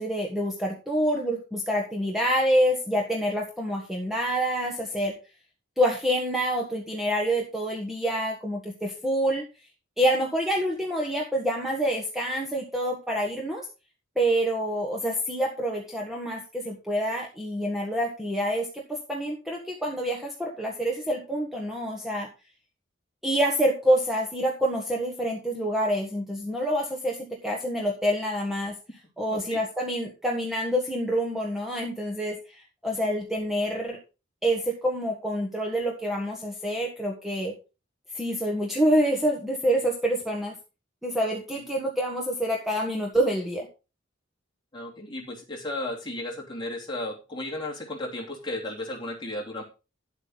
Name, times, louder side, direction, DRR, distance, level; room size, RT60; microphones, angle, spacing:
voice 1, 0.0-5.1 5.8-9.5 10.0-13.7 14.1-22.3 23.2-28.8 29.2-34.0 34.4-37.5 38.1-40.6 41.0-43.7, equal, ahead, -1 dB, 1.4 m, -27 dB
voice 2, 44.7-49.6, left 1 dB, 25° left, -2 dB, 3.0 m, -34 dB
10.5 x 8.0 x 4.0 m, 0.31 s
head